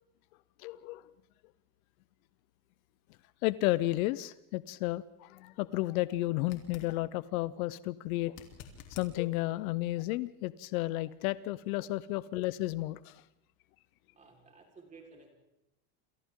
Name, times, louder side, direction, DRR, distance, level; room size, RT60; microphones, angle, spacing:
voice 1, 0.6-1.0 3.4-8.4 8.9-13.2, left 17 dB, 65° left, 17 dB, 0.8 m, -32 dB
sound 1, 6.4-6.9 8.3-9.1 12.1-12.2, left 8 dB, 45° left, 3.1 m, -50 dB
voice 2, 14.1-15.3, right 4 dB, 15° right, 1 dB, 4.4 m, -55 dB
29.0 x 27.5 x 3.8 m, 0.89 s
cardioid pair, 170°, 47 cm